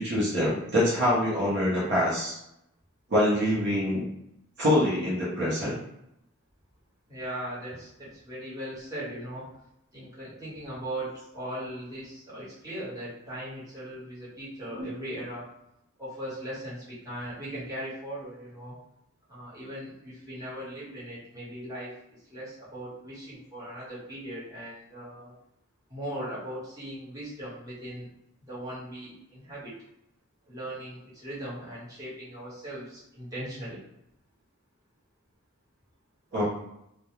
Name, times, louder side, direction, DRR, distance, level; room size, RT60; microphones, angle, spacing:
voice 1, 0.0-2.4 3.1-4.1 4.6-5.8 14.8-14.9 36.3-36.4, equal, 55° right, -7 dB, 0.8 m, -25 dB
voice 2, 7.1-9.5 9.9-15.5 16.0-18.7 19.3-25.3 25.9-28.1 28.5-29.7 30.5-33.8, right 1 dB, 15° right, -10 dB, 1.2 m, -39 dB
2.3 x 2.2 x 3.0 m, 0.81 s
head